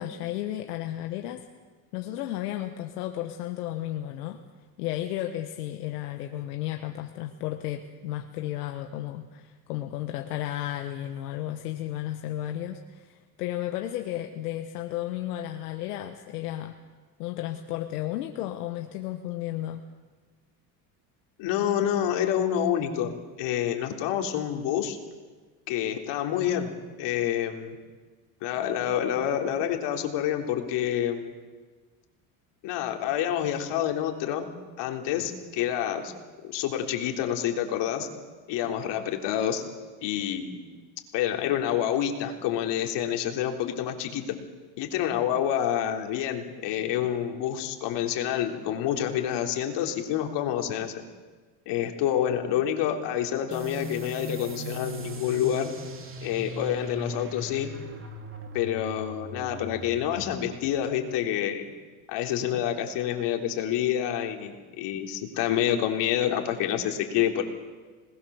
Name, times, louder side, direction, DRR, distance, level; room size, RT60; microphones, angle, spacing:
voice 1, 0.0-1.5 1.9-4.4 4.8-16.7 17.2-19.8, left 13 dB, 90° left, 5 dB, 1.5 m, -33 dB
voice 2, 21.4-25.0 25.7-26.7 27.0-27.8 28.4-31.3 32.6-34.5 34.8-36.1 36.4-38.1 38.5-39.6 40.0-40.6 41.1-44.4 44.8-50.9 51.7-55.7 56.2-57.7 58.5-61.7 62.1-67.4, left 10 dB, 65° left, 3 dB, 3.6 m, -28 dB
sound 1, 53.5-60.8, right 1 dB, 25° right, 3.2 m, -39 dB
26.5 x 20.0 x 7.1 m, 1.4 s
supercardioid pair, 100°, 45 cm